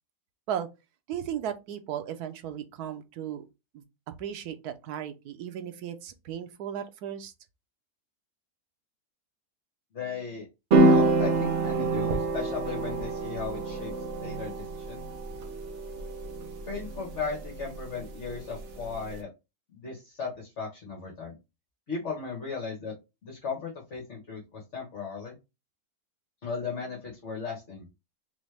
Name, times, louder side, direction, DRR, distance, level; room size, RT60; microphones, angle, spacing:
voice 1, 1.1-3.4 3.7-7.3, right 9 dB, 90° right, 1.2 m, -36 dB
voice 2, 9.9-10.4 10.7-15.0 16.7-19.3 19.7-21.4 21.9-22.9 23.2-25.4 26.4-27.9, left 5 dB, 50° left, 1.6 m, -36 dB
sound 1, 10.7-19.1, right 2 dB, 55° right, 1.2 m, -27 dB
4.1 x 3.1 x 3.3 m
omnidirectional pair, 1.6 m